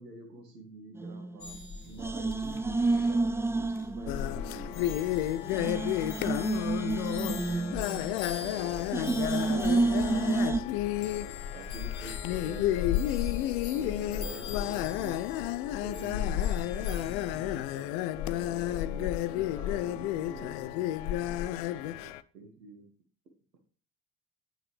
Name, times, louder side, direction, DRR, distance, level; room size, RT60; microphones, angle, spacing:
voice 1, 0.0-5.3 8.4-13.4 13.7-15.2 15.7-22.9, right 3 dB, 85° right, 1.9 m, -47 dB
sound 1, 1.0-1.7 2.0-4.6 4.9-5.0 5.4-8.5 8.9-10.6, right 3 dB, 5° right, 0.4 m, -30 dB
sound 2, 1.4-17.7, left 4 dB, 55° left, 2.1 m, -43 dB
sound 3, 4.1-22.2, left 13 dB, 70° left, 0.6 m, -31 dB
voice 2, 6.4-7.3 13.8-14.3 18.5-18.8 19.4-19.5, right 5 dB, 50° right, 2.8 m, -54 dB
9.4 x 7.6 x 3.3 m
figure-of-eight pair, 45°, 47 cm